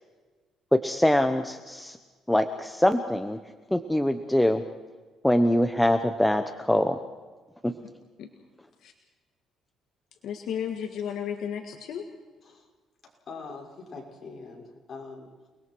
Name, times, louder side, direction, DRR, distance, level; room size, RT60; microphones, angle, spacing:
voice 1, 0.7-2.0 2.3-3.4 3.7-4.6 5.2-7.0 7.6-7.7, left 1 dB, 5° left, 7 dB, 0.9 m, -23 dB
voice 2, 10.2-12.0, left 8 dB, 65° left, 4 dB, 1.8 m, -33 dB
voice 3, 13.3-15.5, left 4 dB, 40° left, -1 dB, 6.2 m, -43 dB
29.5 x 20.5 x 4.7 m, 1.3 s
cardioid pair, 135°, 0 cm